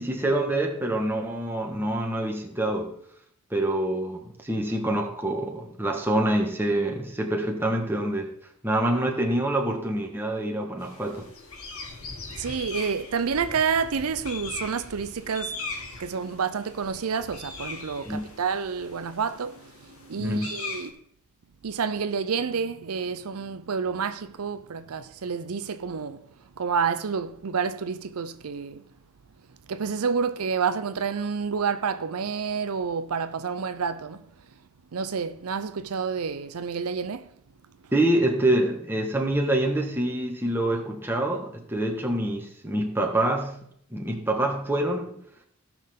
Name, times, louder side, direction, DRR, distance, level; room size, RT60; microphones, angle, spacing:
voice 1, 0.0-2.9 3.5-8.3 8.6-11.3 18.0-18.3 20.2-20.6 37.9-43.6 43.9-45.1, right 1 dB, 10° right, 1.5 m, -26 dB
sound 1, 10.8-20.9, left 3 dB, 75° left, 2.0 m, -40 dB
voice 2, 12.3-15.6 16.0-20.9 21.6-26.3 26.6-28.8 29.7-34.3 34.9-37.3, right 6 dB, 80° right, 0.6 m, -29 dB
17.0 x 6.0 x 3.7 m
head